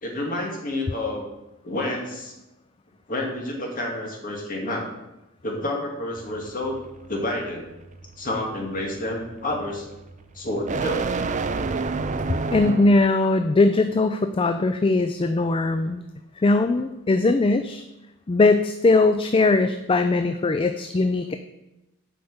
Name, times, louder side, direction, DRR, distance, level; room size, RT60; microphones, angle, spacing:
voice 1, 0.0-1.3 1.6-2.3 3.1-4.9 5.4-6.8 7.1-7.6 8.2-9.9 10.3-11.0, left 1 dB, 40° left, 0 dB, 2.1 m, -29 dB
sound 1, 6.2-13.1, right 4 dB, 35° right, 0.5 m, -30 dB
voice 2, 12.5-16.0 16.4-17.8 18.3-21.4, left 3 dB, 25° left, 8 dB, 0.4 m, -20 dB
7.8 x 5.1 x 7.1 m, 0.95 s
head